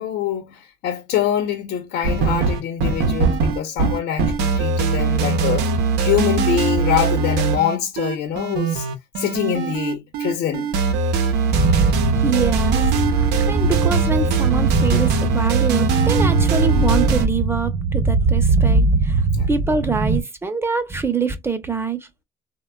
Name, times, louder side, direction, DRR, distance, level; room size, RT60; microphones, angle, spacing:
voice 1, 0.0-5.7 6.0-8.9 9.2-10.7 11.1-11.2 19.3-19.5, left 9 dB, 80° left, 0.8 m, -24 dB
sound 1, 2.0-17.3, right 4 dB, 90° right, 0.7 m, -21 dB
sound 2, 11.5-20.2, right 3 dB, 35° right, 0.9 m, -21 dB
voice 2, 12.2-22.1, right 5 dB, 15° right, 0.6 m, -25 dB
3.2 x 2.2 x 2.2 m
cardioid pair, 110°, 17 cm